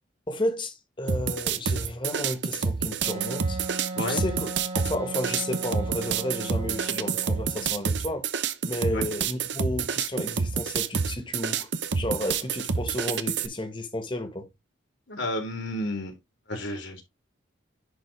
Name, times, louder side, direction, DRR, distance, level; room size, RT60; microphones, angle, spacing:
voice 1, 0.3-3.6 4.0-4.5 4.7-8.3 8.6-11.7 11.9-14.5, left 1 dB, 25° left, 1.5 m, -32 dB
sound 1, 1.1-13.5, right 6 dB, 65° right, 0.8 m, -28 dB
Wind instrument woodwind instrument, 3.0-7.7, right 3 dB, 35° right, 1.7 m, -36 dB
voice 2, 3.9-4.3 8.9-9.1 15.1-16.2 16.5-17.0, left 1 dB, 75° left, 3.2 m, -31 dB
10.5 x 4.1 x 3.4 m
head